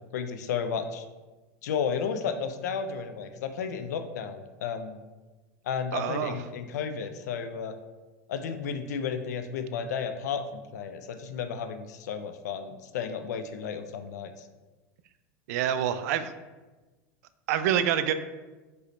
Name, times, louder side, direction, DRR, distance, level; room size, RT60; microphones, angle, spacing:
voice 1, 0.1-1.0 1.6-5.0 5.6-7.8 8.3-14.5, left 6 dB, 90° left, 8 dB, 0.5 m, -33 dB
voice 2, 5.9-6.3 15.5-16.3 17.5-18.1, right 10 dB, 70° right, 12 dB, 0.4 m, -26 dB
5.4 x 3.1 x 3.1 m, 1.2 s
supercardioid pair, 120°, 9 cm